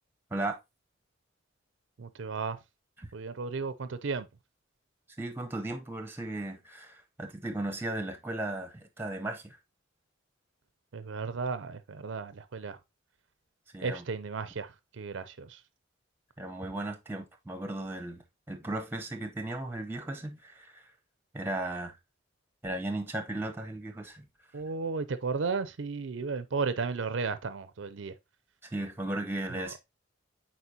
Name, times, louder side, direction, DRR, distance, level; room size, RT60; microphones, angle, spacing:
voice 1, 2.0-2.6 3.1-4.3 10.9-12.8 13.8-15.6 24.5-28.1 29.5-29.7, right 4 dB, 70° right, 0.5 m, -34 dB
voice 2, 5.2-9.6 13.7-14.0 16.4-18.2 18.5-20.8 21.3-22.0 22.6-24.2 28.7-29.8, right 1 dB, 10° right, 0.8 m, -36 dB
8.0 x 4.5 x 2.8 m
head